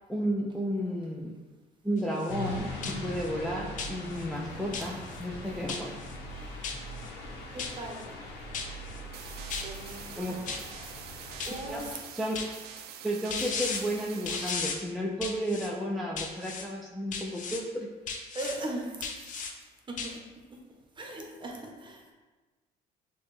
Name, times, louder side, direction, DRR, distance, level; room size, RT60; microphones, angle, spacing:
voice 1, 0.1-1.3 1.8-6.0 10.2-10.4 11.6-12.5 13.0-17.9, equal, ahead, -3 dB, 0.4 m, -33 dB
sound 1, 2.0-2.3 2.8-3.3 3.8-4.2 4.7-5.2 5.7-6.2 6.6-7.1 7.6-8.1 8.5-9.0 9.5-10.0 10.5-10.9 11.4-11.9 12.4-12.8 13.3-13.8 14.3-14.8 15.2-15.7 16.2-16.7 17.1-17.6 18.1-18.6 19.0-19.5 20.0-20.1, left 5 dB, 50° left, 0.6 m, -36 dB
sound 2, 2.3-11.9, left 1 dB, 85° left, 0.8 m, -41 dB
voice 2, 6.3-6.7 7.5-8.2 9.6-10.6 11.4-12.2 18.3-19.4 19.9-20.2 20.5-20.6 21.0-22.1, right 1 dB, 30° right, 1 dB, 0.8 m, -40 dB
sound 3, 9.1-14.5, right 9 dB, 70° right, 0.4 m, -46 dB
6.3 x 2.2 x 3.2 m, 1.3 s
cardioid pair, 110°, 17 cm